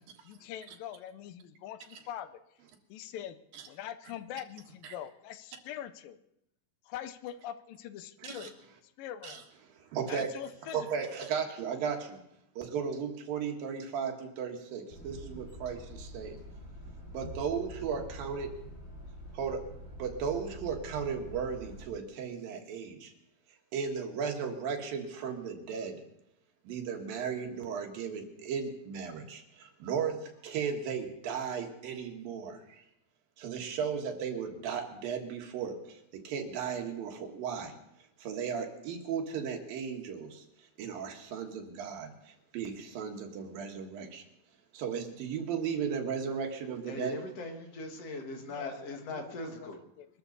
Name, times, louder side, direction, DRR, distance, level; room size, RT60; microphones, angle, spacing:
voice 1, 0.2-2.3 2.9-3.4 3.7-6.2 6.9-8.5 9.0-9.4 10.1-10.9 48.4-49.7 50.0-50.1, left 11 dB, 80° left, 12 dB, 2.4 m, -43 dB
voice 2, 9.8-10.3 10.7-12.2 12.6-16.4 17.1-18.6 19.3-19.6 20.0-23.1 23.7-26.0 26.6-32.8 33.4-37.7 38.2-40.4 40.8-44.2 44.7-47.2, right 6 dB, 80° right, 3 dB, 3.3 m, -36 dB
sound 1, 14.9-21.9, equal, 25° left, 2.7 m, -46 dB
voice 3, 46.9-49.8, left 2 dB, 50° left, 3 dB, 2.6 m, -40 dB
23.5 x 13.0 x 4.0 m, 0.79 s
omnidirectional pair, 4.0 m